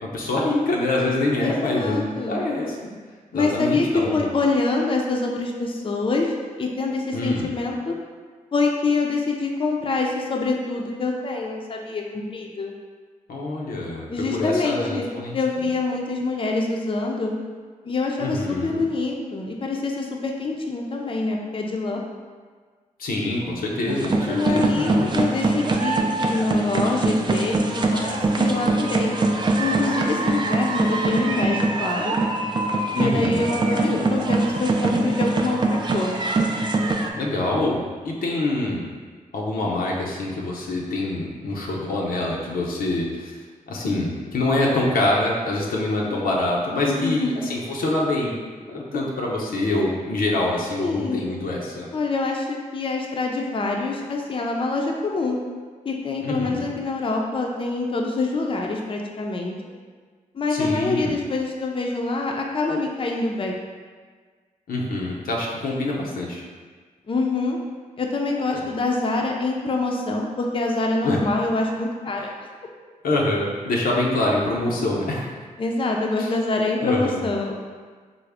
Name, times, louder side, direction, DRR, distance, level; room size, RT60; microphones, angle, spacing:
voice 1, 0.0-2.8 3.3-4.2 7.1-7.5 13.3-15.4 18.2-18.8 23.0-25.2 32.9-34.0 37.1-38.9 39.3-43.3 43.7-48.3 48.7-51.9 56.2-56.7 60.5-61.1 64.7-66.4 68.5-68.6 71.0-71.2 73.0-75.3 76.2-76.3 76.8-77.2, left 2 dB, 80° left, -2 dB, 0.5 m, -25 dB
voice 2, 1.4-2.4 3.3-3.9 4.1-6.3 6.6-8.0 8.5-12.7 14.1-15.1 15.3-17.3 17.8-22.0 24.3-29.2 29.6-32.2 32.9-36.1 46.9-47.3 50.8-51.2 51.9-55.4 55.8-59.7 60.3-63.6 67.1-67.6 68.0-72.3 75.6-77.6, left 3 dB, 35° left, 0 dB, 0.5 m, -25 dB
sound 1, 23.9-37.1, right 2 dB, 30° right, 0.4 m, -23 dB
3.6 x 2.0 x 3.3 m, 1.5 s
cardioid pair, 45°, 15 cm